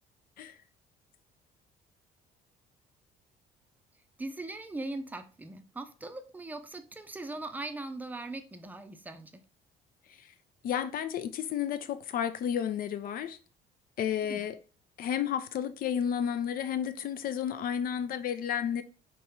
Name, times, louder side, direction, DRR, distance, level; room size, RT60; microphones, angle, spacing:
voice 1, 4.2-9.4 14.2-14.5, right 2 dB, 10° right, 0.6 m, -40 dB
voice 2, 10.6-13.4 14.0-14.6 15.0-18.8, left 9 dB, 60° left, 0.6 m, -32 dB
3.5 x 3.1 x 4.5 m
cardioid pair, 110°, 17 cm